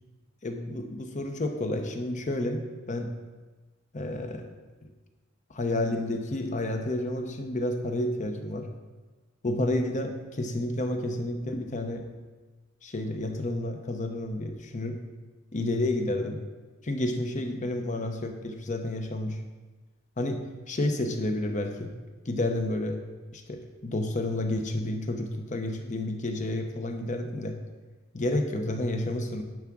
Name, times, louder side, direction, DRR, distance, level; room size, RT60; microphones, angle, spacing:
voice 1, 0.4-3.1 3.9-4.5 4.8-4.9 5.5-8.7 9.4-12.1 12.8-15.0 15.5-16.4 16.8-19.4 20.2-21.9 22.3-23.0 23.3-27.6 28.1-29.4, left 1 dB, 35° left, 5 dB, 0.8 m, -30 dB
10.5 x 3.6 x 6.0 m, 1.3 s
head